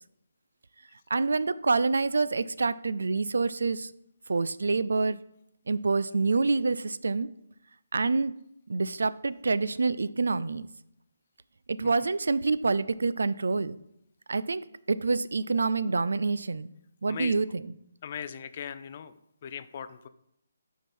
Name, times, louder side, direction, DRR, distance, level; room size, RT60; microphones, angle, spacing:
voice 1, 1.1-3.9 4.3-5.2 5.7-7.3 7.9-8.3 8.7-10.6 11.7-13.8 14.3-16.7 17.0-17.7, right 4 dB, 80° right, 16 dB, 0.3 m, -27 dB
voice 2, 18.0-19.1 19.4-20.1, left 8 dB, 35° left, 12 dB, 0.3 m, -38 dB
6.5 x 4.7 x 4.3 m, 0.77 s
hypercardioid pair, 170°, 0 cm